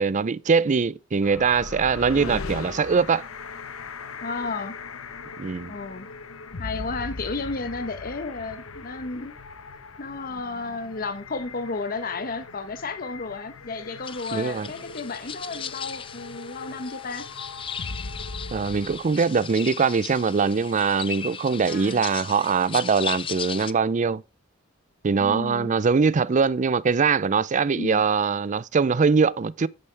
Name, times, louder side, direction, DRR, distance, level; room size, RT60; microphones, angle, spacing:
voice 1, 0.0-3.2 5.4-5.8 14.3-14.7 18.5-24.2 25.0-29.7, right 5 dB, 35° right, 0.4 m, -22 dB
sound 1, 1.2-19.0, left 4 dB, 90° left, 1.0 m, -39 dB
voice 2, 2.1-2.5 4.2-4.7 5.7-6.1 6.6-9.3 10.0-17.2 21.7-22.0 25.2-25.7 27.7-28.0, left 3 dB, 45° left, 1.0 m, -33 dB
sound 2, 14.0-23.7, left 7 dB, 25° left, 0.5 m, -37 dB
10.0 x 9.7 x 3.3 m
head